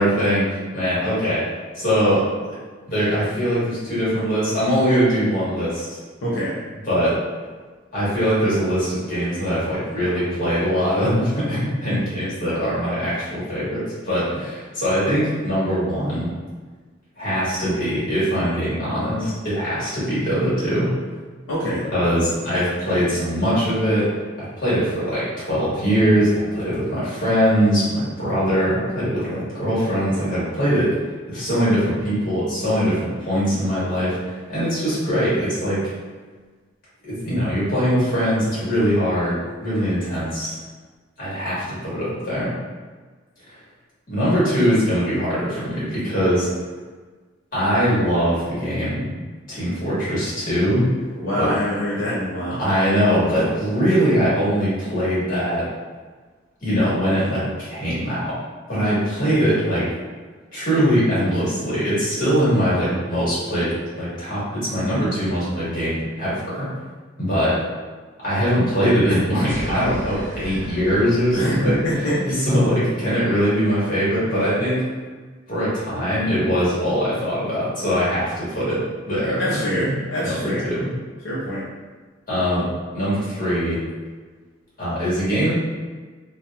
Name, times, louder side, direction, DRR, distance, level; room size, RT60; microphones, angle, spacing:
voice 1, 0.0-1.5 1.7-2.6 2.9-6.0 6.9-7.2 7.9-16.3 17.2-21.0 21.9-35.9 37.1-40.6 41.2-42.5 44.1-46.5 47.5-49.1 49.5-50.9 51.4-51.5 52.6-55.7 56.6-58.4 58.7-59.9 60.5-66.7 67.2-67.6 68.2-71.8 72.3-74.8 75.5-79.9 80.2-80.9 82.3-83.9 84.8-85.5, equal, 45° left, -10 dB, 1.4 m, -22 dB
voice 2, 6.2-6.6 21.5-21.9 51.2-52.6 71.3-72.3 79.4-80.7 81.2-81.6, equal, 85° left, -9 dB, 0.6 m, -25 dB
sound 1, 69.5-72.0, equal, 40° right, 0.6 m, -36 dB
2.8 x 2.2 x 2.2 m, 1.4 s
head